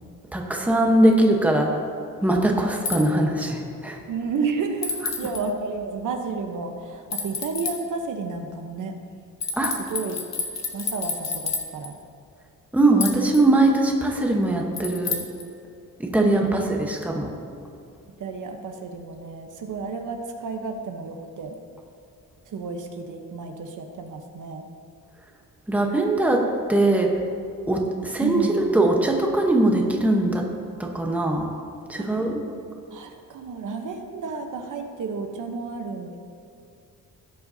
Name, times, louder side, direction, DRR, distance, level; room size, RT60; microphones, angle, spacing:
voice 1, 0.3-1.8 2.2-4.0 5.0-5.3 9.5-9.7 12.7-15.2 16.0-17.3 25.7-26.4 26.7-27.1 27.7-30.4 30.8-31.5 31.9-32.4, right 1 dB, 5° right, 1 dB, 1.0 m, -21 dB
sound 1, 2.8-3.0 4.8-5.4 7.1-7.8 9.4-11.9 13.0-13.4 14.8-15.4, left 4 dB, 50° left, 1.3 m, -29 dB
voice 2, 4.1-8.9 9.9-10.2 10.7-12.0 16.2-16.7 18.2-21.5 22.5-24.7 28.2-28.7 32.0-32.2 32.9-36.2, right 4 dB, 65° right, 4 dB, 1.0 m, -31 dB
17.5 x 7.7 x 2.8 m, 2.6 s
wide cardioid pair, 150°, 34 cm